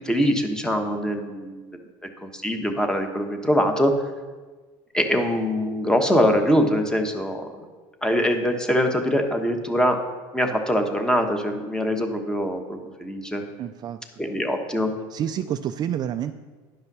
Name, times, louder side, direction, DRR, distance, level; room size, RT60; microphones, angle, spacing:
voice 1, 0.0-1.8 2.2-3.9 4.9-7.5 8.0-10.0 10.3-13.4 14.2-14.9, equal, 5° left, 5 dB, 1.1 m, -23 dB
voice 2, 13.6-14.0 15.1-16.3, right 10 dB, 40° right, 9 dB, 0.4 m, -28 dB
10.5 x 5.5 x 6.1 m, 1.3 s
supercardioid pair, 120°, 11 cm